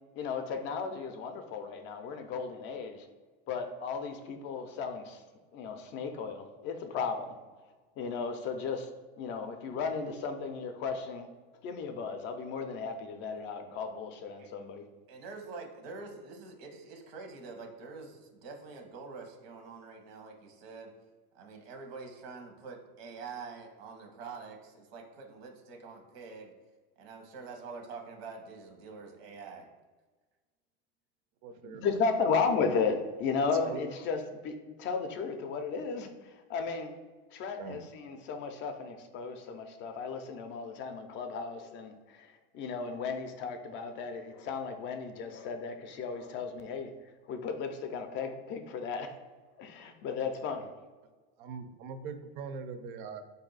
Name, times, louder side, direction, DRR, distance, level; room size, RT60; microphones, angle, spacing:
voice 1, 0.1-3.1 3.5-5.2 5.5-7.3 8.0-8.9 9.2-11.3 11.6-14.8 31.8-36.9 37.3-46.9 47.3-49.1 49.6-50.7, left 5 dB, 40° left, 7 dB, 0.4 m, -35 dB
voice 2, 15.1-20.9 21.3-26.5 27.0-29.7, right 4 dB, 80° right, 3 dB, 1.1 m, -46 dB
voice 3, 31.4-32.0 33.5-33.9 37.6-37.8 51.4-53.2, right 5 dB, 55° right, 9 dB, 0.6 m, -41 dB
4.3 x 2.7 x 3.9 m, 1.3 s
supercardioid pair, 145°, 30 cm